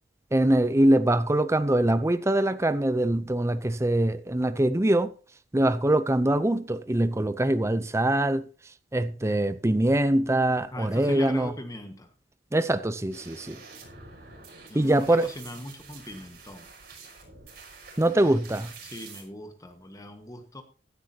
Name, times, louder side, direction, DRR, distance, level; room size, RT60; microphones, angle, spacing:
voice 1, 0.3-5.1 5.5-8.4 8.9-11.5 12.5-13.6 14.7-15.3 18.0-18.7, right 1 dB, 15° right, 0.6 m, -23 dB
voice 2, 10.7-12.1 14.7-16.7 18.2-18.4 18.8-20.6, left 1 dB, 20° left, 1.5 m, -40 dB
sound 1, 13.1-19.2, right 4 dB, 55° right, 5.8 m, -47 dB
16.0 x 11.5 x 2.8 m
head